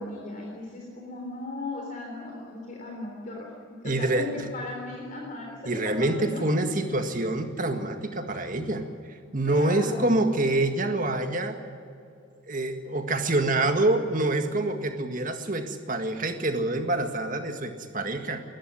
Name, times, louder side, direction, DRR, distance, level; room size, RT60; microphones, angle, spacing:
voice 1, 0.0-3.5 3.8-6.7 9.5-10.0, left 2 dB, 40° left, 0 dB, 3.5 m, -37 dB
voice 2, 3.8-4.5 5.7-11.6 12.5-18.4, right 2 dB, 40° right, 6 dB, 1.8 m, -26 dB
21.0 x 14.0 x 9.8 m, 2.4 s
head